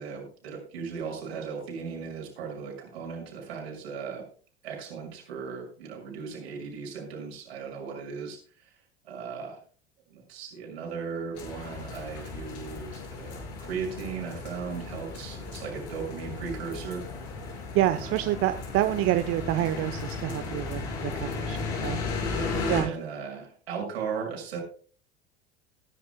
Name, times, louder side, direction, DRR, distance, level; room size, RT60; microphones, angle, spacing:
voice 1, 0.0-4.3 4.6-8.4 9.0-9.6 10.1-17.0 17.9-18.3 22.4-24.6, right 6 dB, 70° right, 1 dB, 6.1 m, -37 dB
sound 1, 11.3-22.8, left 4 dB, 50° left, 5.8 m, -35 dB
voice 2, 17.7-22.0 22.7-23.0, right 14 dB, 45° right, 10 dB, 0.9 m, -27 dB
20.5 x 11.0 x 2.2 m, 0.40 s
figure-of-eight pair, 75°, 32 cm